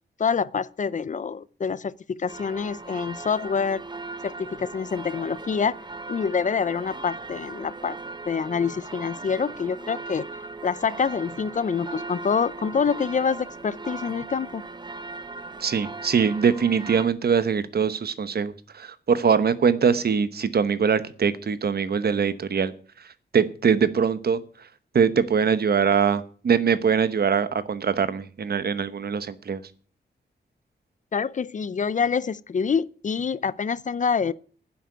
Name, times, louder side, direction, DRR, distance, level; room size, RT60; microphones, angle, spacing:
voice 1, 0.2-3.8 4.2-5.8 6.1-8.0 8.3-10.2 10.6-14.6 31.1-34.3, left 6 dB, 45° left, 0.5 m, -26 dB
sound 1, 2.3-17.1, right 3 dB, 25° right, 0.9 m, -38 dB
voice 2, 15.6-22.7 23.3-24.4 24.9-29.6, right 6 dB, 60° right, 1.0 m, -22 dB
10.0 x 7.9 x 9.1 m
wide cardioid pair, 135°, 18 cm